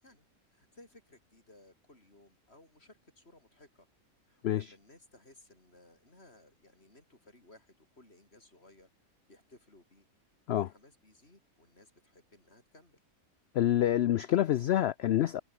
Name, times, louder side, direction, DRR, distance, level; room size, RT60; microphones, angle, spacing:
voice 1, 0.0-3.9 4.3-10.1 10.6-13.0, left 2 dB, 45° left, 5.3 m, -60 dB
voice 2, 13.5-15.4, left 12 dB, 65° left, 0.7 m, -27 dB
omnidirectional pair, 1.5 m